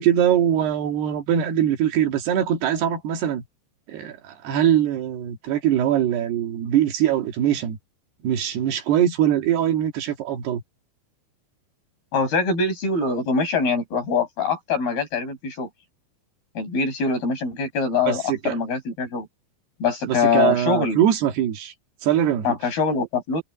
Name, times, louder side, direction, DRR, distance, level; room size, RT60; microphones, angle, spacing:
voice 1, 0.0-3.4 3.9-7.8 8.2-10.6 18.1-18.6 20.1-21.7 22.0-22.6, right 10 dB, 70° right, 3.8 m, -22 dB
voice 2, 12.1-15.7 16.6-19.3 19.8-21.0 22.4-23.4, left 4 dB, 60° left, 9.4 m, -23 dB
omnidirectional pair, 4.9 m